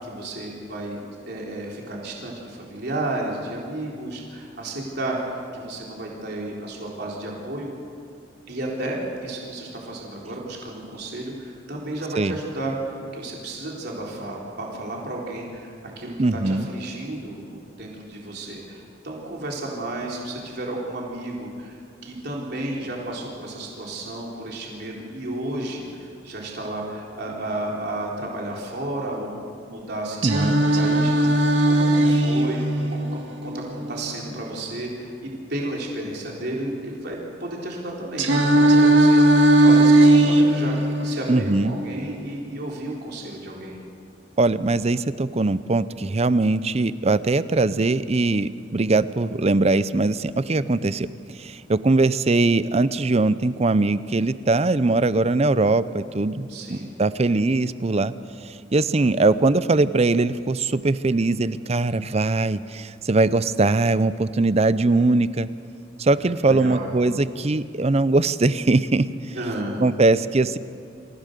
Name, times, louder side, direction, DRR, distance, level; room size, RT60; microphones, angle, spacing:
voice 1, 0.0-1.0 1.3-7.7 8.5-31.4 31.6-32.6 32.9-40.8 41.0-43.8 56.5-57.0 66.2-66.9 69.3-69.8, right 1 dB, 60° right, -2 dB, 3.8 m, -32 dB
voice 2, 16.2-16.7 30.2-30.6 41.3-41.7 44.4-51.1 51.4-58.1 58.4-65.5 66.0-69.3 69.8-70.6, right 3 dB, 35° right, 15 dB, 0.6 m, -21 dB
Singing, 30.2-34.2 38.2-42.2, right 1 dB, 80° right, 2.0 m, -18 dB
27.5 x 15.5 x 6.7 m, 2.4 s
head